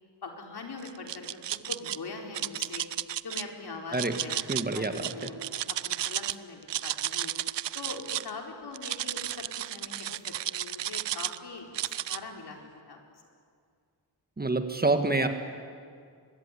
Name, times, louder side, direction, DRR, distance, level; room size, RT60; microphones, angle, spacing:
voice 1, 0.2-1.4 1.7-2.8 3.2-7.3 7.7-13.0, left 3 dB, 65° left, 2 dB, 4.2 m, -42 dB
sound 1, 0.8-2.0 2.3-3.4 3.9-6.4 6.6-8.3 8.7-11.4 11.7-12.2, right 12 dB, 80° right, 0.7 m, -33 dB
voice 2, 4.5-5.3 14.4-15.3, right 2 dB, 20° right, 7 dB, 1.5 m, -27 dB
24.0 x 21.5 x 9.9 m, 2.2 s
wide cardioid pair, 135°, 42 cm